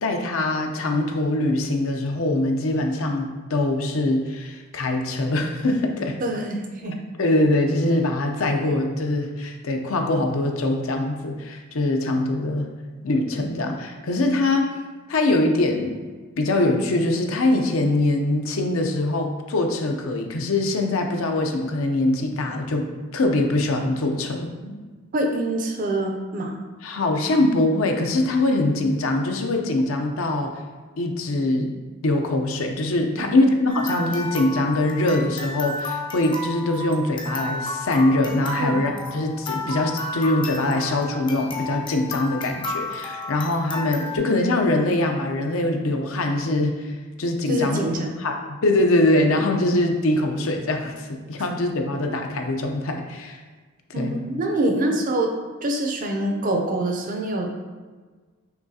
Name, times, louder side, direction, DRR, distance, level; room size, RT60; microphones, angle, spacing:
voice 1, 0.0-6.2 7.2-12.7 13.0-14.8 15.1-16.0 16.4-24.5 26.8-30.6 31.0-31.7 32.0-47.8 48.2-53.4 53.9-54.2, left 2 dB, 70° left, 3 dB, 0.6 m, -23 dB
voice 2, 6.2-7.0 24.6-24.7 25.1-26.6 33.2-33.3 33.8-34.0 38.6-38.8 47.5-48.1 53.9-55.3 55.6-57.5, right 1 dB, 40° right, 2 dB, 0.5 m, -25 dB
sound 1, 33.7-44.2, left 2 dB, 25° left, 0.5 m, -32 dB
6.0 x 3.1 x 2.7 m, 1.4 s
head